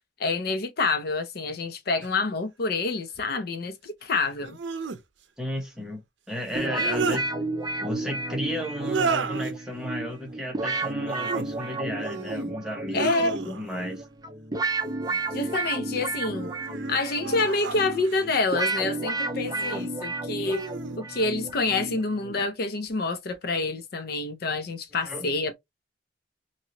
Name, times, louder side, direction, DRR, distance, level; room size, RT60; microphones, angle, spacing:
voice 1, 0.2-4.6 12.9-13.4 15.3-16.5 16.9-20.6 21.0-25.6, left 3 dB, 60° left, 0.6 m, -27 dB
sound 1, 2.0-2.1 4.4-5.0 6.5-7.2 8.8-9.5 11.0-11.5 12.0-12.5 12.9-13.8 15.0-15.7 16.3-18.3 19.4-19.9 20.4-21.0, right 5 dB, 90° right, 0.5 m, -33 dB
voice 2, 5.4-6.0 6.3-7.3 7.8-13.1 13.5-14.0 25.0-25.3, left 1 dB, 5° right, 1.1 m, -34 dB
sound 2, 6.5-22.5, right 2 dB, 20° right, 0.7 m, -32 dB
3.0 x 2.8 x 2.7 m
head